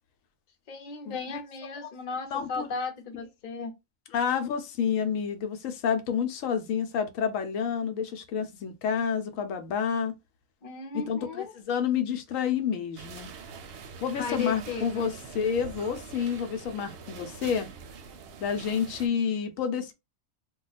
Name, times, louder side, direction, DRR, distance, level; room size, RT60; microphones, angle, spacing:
voice 1, 0.7-3.7 10.6-11.5 14.2-15.1, left 5 dB, 45° left, 0.7 m, -35 dB
voice 2, 2.3-2.7 4.1-10.1 10.9-13.3 14.0-17.7 18.4-19.9, left 7 dB, 80° left, 1.0 m, -29 dB
sound 1, 13.0-19.1, right 5 dB, 65° right, 0.7 m, -44 dB
2.3 x 2.2 x 3.9 m
omnidirectional pair, 1.4 m